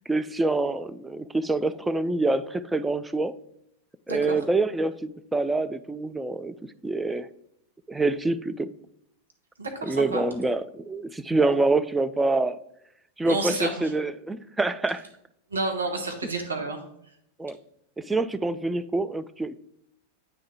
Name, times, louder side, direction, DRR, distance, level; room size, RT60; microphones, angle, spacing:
voice 1, 0.1-3.3 4.1-6.6 6.8-7.3 7.9-8.7 9.8-12.6 13.2-15.0 17.4-17.6 18.0-19.6, right 2 dB, 10° right, 11 dB, 0.3 m, -26 dB
voice 2, 9.6-10.2 13.2-13.9 15.5-16.8, right 3 dB, 75° right, 3 dB, 1.0 m, -30 dB
8.7 x 3.5 x 3.3 m, 0.76 s
figure-of-eight pair, 90°, 0 cm